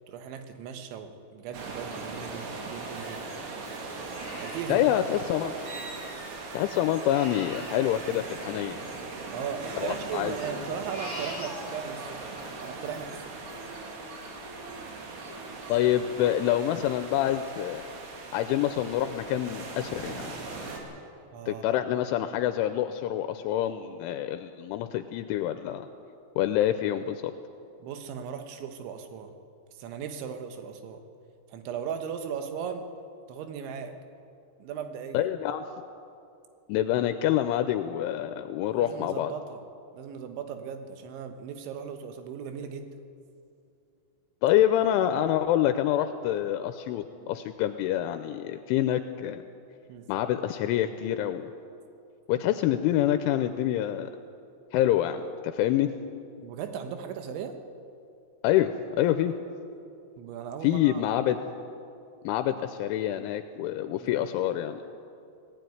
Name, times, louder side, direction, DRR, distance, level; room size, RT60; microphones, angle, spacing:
voice 1, 0.1-3.4 4.4-5.0 9.3-12.2 12.6-13.3 21.3-21.8 27.8-29.3 29.8-31.0 31.5-32.9 33.3-33.9 34.6-35.2 38.7-39.6 39.9-42.9 49.9-50.1 56.4-57.6 60.2-61.1 63.9-64.2, right 7 dB, 75° right, 7 dB, 3.5 m, -37 dB
sound 1, 1.5-20.8, right 3 dB, 90° right, 5.2 m, -40 dB
Crying sobbing, 1.7-3.4 3.8-6.2 6.5-8.9 9.3-12.2 12.5-18.0 18.4-18.6 19.0-19.5 20.0-20.1 20.6-20.7, equal, 25° right, 2.2 m, -46 dB
voice 2, 4.7-5.5 6.5-8.8 9.8-10.4 15.7-17.8 18.3-20.4 21.5-25.9 26.4-27.2 35.1-35.6 36.7-39.3 44.4-49.4 50.1-51.5 52.3-54.1 54.7-55.9 58.4-58.7 59.0-59.3 60.6-61.4 62.2-64.8, left 12 dB, 85° left, 9 dB, 3.0 m, -26 dB
19.5 x 15.0 x 9.3 m, 2.6 s
omnidirectional pair, 5.8 m